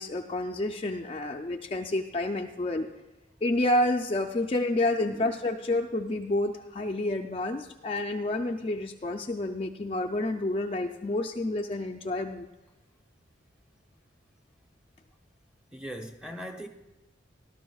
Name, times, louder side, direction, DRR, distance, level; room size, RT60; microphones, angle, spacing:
voice 1, 0.0-2.9 3.4-12.5, left 2 dB, 30° left, 3 dB, 0.4 m, -29 dB
voice 2, 15.7-16.7, equal, 5° right, 3 dB, 0.8 m, -40 dB
19.0 x 12.0 x 2.3 m, 1.0 s
head